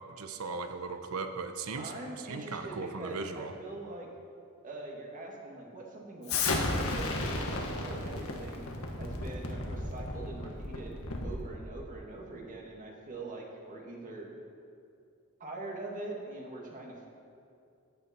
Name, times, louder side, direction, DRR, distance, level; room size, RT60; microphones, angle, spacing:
voice 1, 0.1-1.9 2.2-3.5, right 4 dB, 85° right, 8 dB, 0.9 m, -37 dB
voice 2, 1.8-4.1 4.6-8.7 9.0-14.3 15.4-17.1, right 2 dB, 40° right, -1 dB, 2.0 m, -43 dB
Explosion, 6.3-11.4, left 2 dB, 90° left, 1.6 m, -33 dB
14.5 x 10.0 x 4.4 m, 2.5 s
head